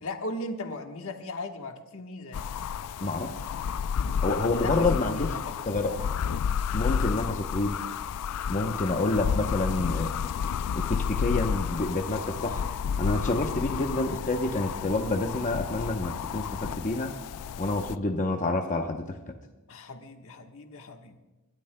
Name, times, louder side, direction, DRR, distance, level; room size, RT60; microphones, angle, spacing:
voice 1, 0.0-2.5 4.5-6.0 19.7-21.2, left 2 dB, 65° left, 4 dB, 1.3 m, -37 dB
sound 1, 2.3-18.0, left 7 dB, 90° left, 0.4 m, -31 dB
voice 2, 3.0-3.4 4.2-5.3 5.7-5.9 6.7-7.8 8.5-10.1 10.7-12.6 13.0-17.1 17.6-19.2, left 2 dB, 35° left, 3 dB, 0.8 m, -28 dB
29.5 x 12.5 x 2.2 m, 1.1 s
head